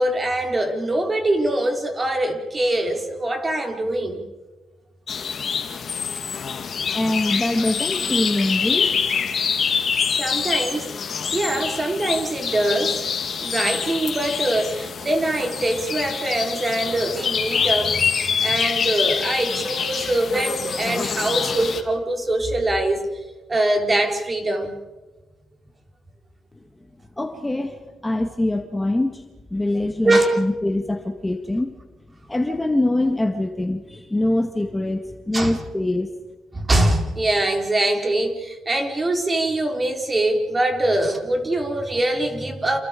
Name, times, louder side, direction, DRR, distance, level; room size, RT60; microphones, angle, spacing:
voice 1, 0.0-4.3 10.2-10.9 11.3-13.1 13.4-23.1 23.5-24.8 30.0-30.4 35.3-35.6 36.5-42.8, right 1 dB, 25° right, 3 dB, 4.3 m, -23 dB
sound 1, 5.1-21.8, left 6 dB, 50° left, 2.7 m, -25 dB
voice 2, 6.9-9.0 27.2-29.3 29.5-31.8 32.3-36.1, left 1 dB, 10° left, 5 dB, 1.8 m, -24 dB
29.5 x 28.5 x 5.2 m, 1.2 s
cardioid pair, 105°, 0 cm